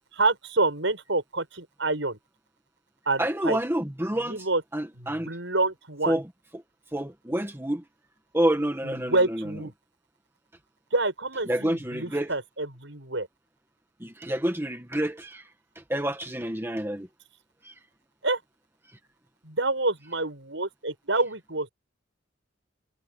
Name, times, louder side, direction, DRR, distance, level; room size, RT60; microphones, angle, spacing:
voice 1, 0.1-2.2 3.1-3.6 4.2-4.6 5.0-6.2 8.8-9.7 10.9-13.3 18.2-18.4 19.4-21.7, right 2 dB, 75° right, 6.9 m, -27 dB
voice 2, 3.2-4.5 4.7-5.3 6.1-6.2 6.5-6.6 6.9-7.8 8.3-9.6 11.4-12.3 14.0-15.5 15.7-17.1 17.6-17.7, right 1 dB, 10° right, 1.5 m, -28 dB
head